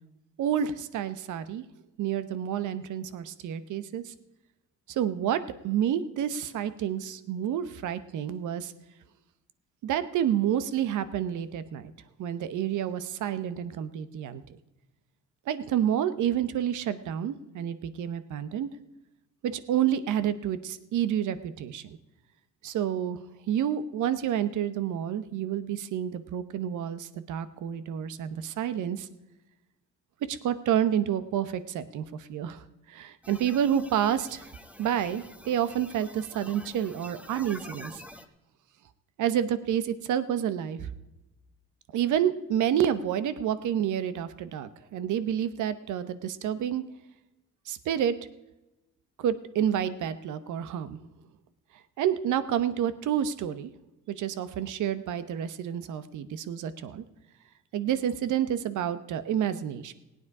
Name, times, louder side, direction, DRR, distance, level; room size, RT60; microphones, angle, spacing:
voice 1, 0.4-1.6 2.0-4.1 4.9-8.7 9.8-11.9 12.2-14.4 15.5-18.7 19.4-22.0 22.6-23.2 23.5-29.1 30.3-34.5 34.8-38.0 39.2-40.9 41.9-46.8 47.7-48.1 49.2-51.0 52.0-53.7 54.1-57.0 57.7-59.9, right 10 dB, 80° right, 14 dB, 1.0 m, -29 dB
sound 1, 33.2-38.3, left 1 dB, 5° right, 1.2 m, -47 dB
17.5 x 9.4 x 4.8 m, 0.98 s
cardioid pair, 90°, 30 cm